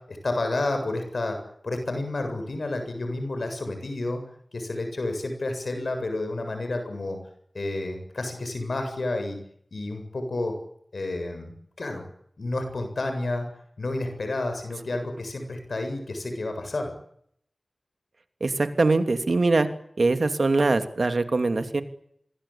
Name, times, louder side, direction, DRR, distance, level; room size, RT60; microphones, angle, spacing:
voice 1, 0.1-1.4 1.6-4.2 4.5-7.2 7.5-9.4 9.7-10.5 10.9-12.0 12.4-13.5 13.8-16.9, left 2 dB, 85° left, 6 dB, 7.6 m, -30 dB
voice 2, 18.4-19.7 20.0-21.8, right 3 dB, 70° right, 8 dB, 2.8 m, -22 dB
27.0 x 22.0 x 8.7 m, 0.70 s
wide cardioid pair, 55°, 0 cm